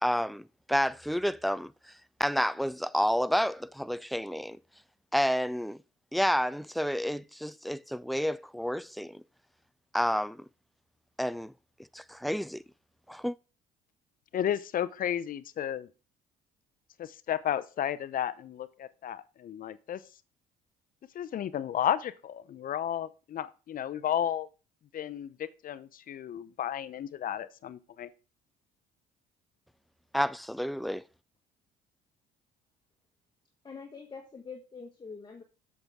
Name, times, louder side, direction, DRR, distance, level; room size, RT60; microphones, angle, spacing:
voice 1, 0.0-1.7 2.2-4.6 5.1-5.8 6.1-9.2 9.9-10.5 11.2-11.5 11.9-12.6 13.1-13.4 30.1-31.0, equal, ahead, 0.3 m, -30 dB
voice 2, 14.3-15.9 17.0-20.0 21.1-24.5 24.9-28.1, left 10 dB, 50° left, 0.7 m, -33 dB
voice 3, 33.6-35.4, left 5 dB, 25° left, 1.4 m, -44 dB
8.0 x 6.1 x 3.5 m
supercardioid pair, 70°, 19 cm